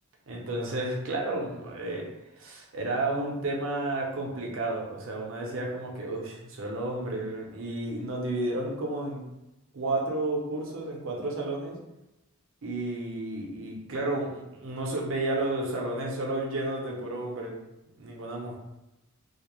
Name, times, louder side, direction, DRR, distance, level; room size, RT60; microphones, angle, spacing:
voice 1, 0.3-2.1 2.4-9.2 9.7-11.8 12.6-17.6 18.0-18.6, right 2 dB, 65° right, -1 dB, 0.6 m, -32 dB
2.3 x 2.0 x 2.9 m, 0.95 s
head